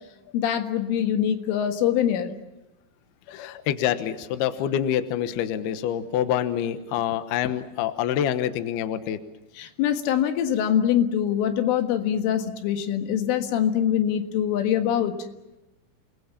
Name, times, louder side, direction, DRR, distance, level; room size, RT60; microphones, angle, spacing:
voice 1, 0.3-2.3 3.3-3.5 9.6-15.2, left 9 dB, 85° left, 6 dB, 4.2 m, -24 dB
voice 2, 3.3-9.2, left 10 dB, 70° left, 10 dB, 2.8 m, -26 dB
28.5 x 20.5 x 7.3 m, 1.0 s
omnidirectional pair, 5.5 m